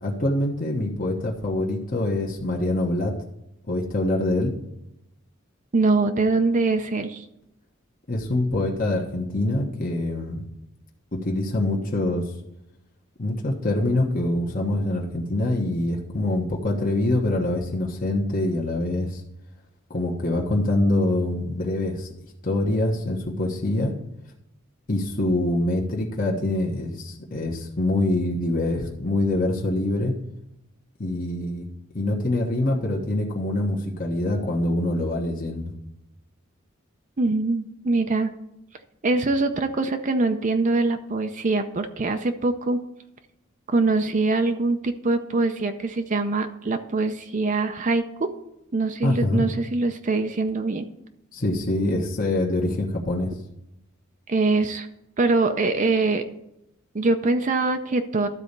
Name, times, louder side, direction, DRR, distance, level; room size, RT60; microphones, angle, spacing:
voice 1, 0.0-3.1 3.7-4.5 8.1-10.4 11.1-12.2 13.2-19.2 19.9-22.1 22.4-23.9 24.9-30.1 31.0-31.6 31.9-35.7 49.0-49.5 51.3-53.3, left 1 dB, 45° left, -1 dB, 1.3 m, -25 dB
voice 2, 5.7-7.2 37.2-38.3 39.0-42.8 43.7-48.3 48.7-50.9 54.3-54.9 55.2-56.2 56.9-58.3, right 3 dB, 40° right, 7 dB, 0.6 m, -23 dB
12.5 x 4.2 x 6.7 m, 0.83 s
head